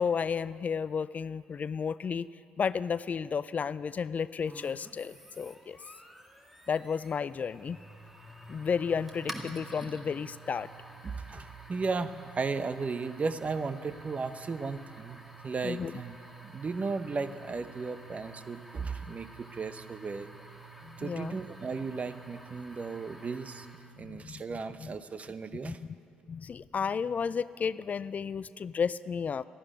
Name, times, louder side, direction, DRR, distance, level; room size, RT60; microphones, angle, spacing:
voice 1, 0.0-2.3 2.6-5.8 6.7-7.8 8.5-10.7 15.6-15.9 20.8-21.4 24.0-24.4 24.8-24.9 25.6-25.7 26.3-29.5, left 6 dB, 40° left, 17 dB, 0.4 m, -32 dB
sound 1, 4.4-24.0, right 2 dB, 5° right, 1.9 m, -49 dB
voice 2, 11.0-16.2 16.4-20.3 21.0-23.7 24.0-25.8, right 4 dB, 35° right, 12 dB, 0.9 m, -35 dB
13.0 x 11.0 x 9.9 m, 2.4 s
hypercardioid pair, 50°, 4 cm